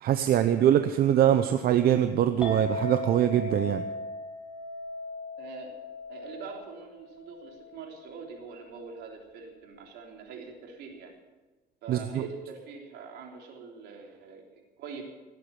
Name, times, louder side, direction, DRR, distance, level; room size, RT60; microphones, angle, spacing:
voice 1, 0.0-3.8 11.9-12.2, right 10 dB, 65° right, 8 dB, 0.8 m, -23 dB
Chink clink, 2.4-8.7, left 1 dB, 5° right, 4.9 m, -38 dB
voice 2, 5.4-5.7 6.1-11.2 11.8-15.0, right 5 dB, 85° right, 1 dB, 3.5 m, -44 dB
18.0 x 8.6 x 8.6 m, 1.2 s
cardioid pair, 110°, 17 cm